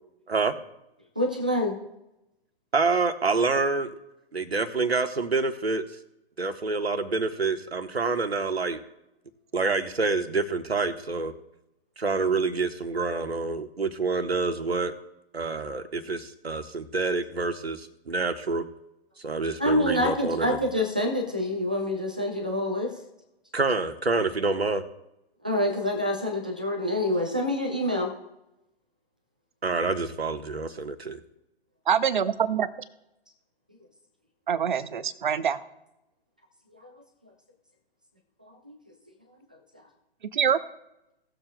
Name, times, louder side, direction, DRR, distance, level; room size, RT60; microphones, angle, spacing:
voice 1, 1.2-1.8 19.6-22.9 25.4-28.1 36.7-37.0 38.4-38.8, left 1 dB, 10° right, 2 dB, 0.3 m, -27 dB
voice 2, 2.7-3.9 4.3-5.8 6.4-8.8 9.5-11.3 12.0-14.9 15.3-18.6 19.2-20.6 23.5-24.8 29.6-31.2, right 3 dB, 75° right, 7 dB, 1.3 m, -27 dB
voice 3, 31.9-32.7 34.5-35.6 40.3-40.6, right 8 dB, 50° right, 14 dB, 0.8 m, -24 dB
18.0 x 7.1 x 2.2 m, 0.90 s
figure-of-eight pair, 125°, 32 cm